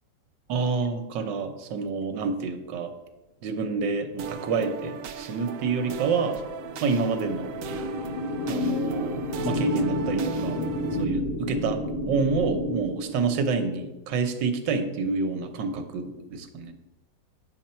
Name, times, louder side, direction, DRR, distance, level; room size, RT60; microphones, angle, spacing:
voice 1, 0.5-2.9 3.4-6.4 6.8-7.5 8.5-10.6 11.0-11.8 12.1-16.7, right 4 dB, 85° right, 7 dB, 1.6 m, -28 dB
sound 1, 4.2-11.0, right 7 dB, 65° right, 0.8 m, -37 dB
sound 2, 5.0-13.8, left 1 dB, 45° left, 1.0 m, -31 dB
9.0 x 6.8 x 4.3 m, 1.0 s
omnidirectional pair, 1.9 m